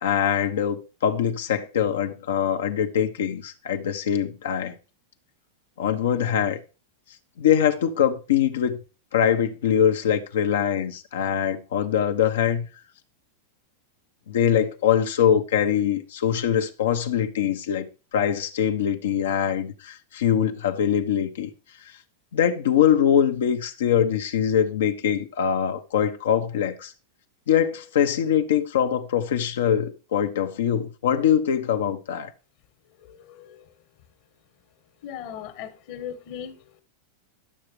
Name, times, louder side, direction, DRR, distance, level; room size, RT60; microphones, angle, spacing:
voice 1, 0.0-4.8 5.8-6.6 7.4-8.8 9.1-12.7 14.3-21.5 22.3-26.9 27.5-32.3, left 9 dB, 75° left, 1.3 m, -23 dB
voice 2, 33.1-33.5 35.0-36.6, left 9 dB, 60° left, 1.8 m, -37 dB
11.5 x 6.9 x 3.3 m
hypercardioid pair, 105°, 0 cm